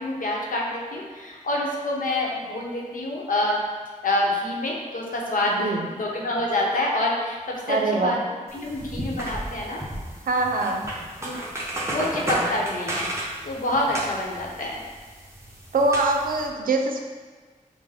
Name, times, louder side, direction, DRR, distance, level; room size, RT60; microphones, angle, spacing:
voice 1, 0.0-3.6 4.0-8.2 8.5-9.8 11.2-11.4 11.9-13.1 13.4-14.7, left 1 dB, 75° left, -2 dB, 0.8 m, -27 dB
voice 2, 5.5-5.9 7.7-8.2 10.3-10.9 15.7-17.0, right 3 dB, 85° right, 3 dB, 0.5 m, -23 dB
sound 1, 8.5-16.5, right 1 dB, 20° right, 0.9 m, -33 dB
5.5 x 2.1 x 3.5 m, 1.4 s
cardioid pair, 60°, 14 cm